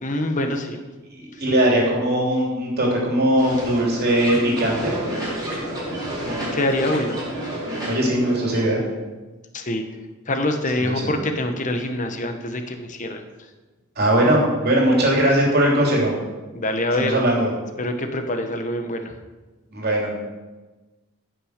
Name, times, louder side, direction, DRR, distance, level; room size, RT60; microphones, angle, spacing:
voice 1, 0.0-0.8 6.5-7.2 9.5-9.8 10.3-13.2 16.5-17.2 17.8-19.1, left 1 dB, 35° left, 6 dB, 1.2 m, -25 dB
voice 2, 1.1-4.9 7.9-8.8 10.8-10.9 14.0-16.1 17.0-17.5 19.7-20.1, right 1 dB, 45° right, -2 dB, 3.3 m, -20 dB
sound 1, 3.4-8.6, right 1 dB, 20° right, 4.9 m, -30 dB
15.0 x 6.3 x 6.6 m, 1.2 s
head